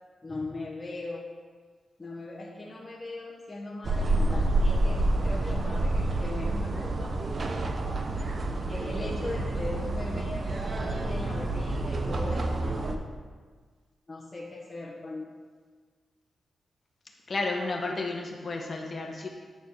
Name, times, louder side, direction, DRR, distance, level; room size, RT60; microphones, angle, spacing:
voice 1, 0.2-1.2 2.0-7.1 8.7-13.0 14.1-15.3, left 2 dB, 25° left, -4 dB, 1.2 m, -39 dB
sound 1, 3.8-13.0, right 2 dB, 40° right, 0.7 m, -28 dB
voice 2, 17.3-19.3, left 3 dB, 40° left, 1 dB, 1.3 m, -32 dB
9.3 x 4.1 x 6.6 m, 1.5 s
wide cardioid pair, 120°, 0 cm